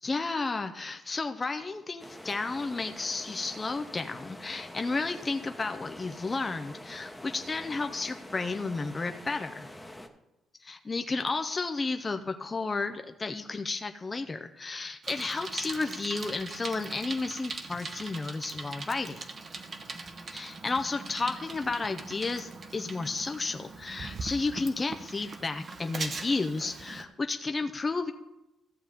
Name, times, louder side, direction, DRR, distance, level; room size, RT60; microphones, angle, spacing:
voice 1, 0.0-9.7 10.6-19.2 20.3-28.1, left 3 dB, 25° left, 6 dB, 0.5 m, -32 dB
sound 1, 2.0-10.1, left 1 dB, 5° left, 1.0 m, -46 dB
Bicycle, 15.0-27.0, right 3 dB, 40° right, 0.9 m, -41 dB
14.5 x 7.2 x 3.5 m, 0.94 s
cardioid pair, 90°, 0 cm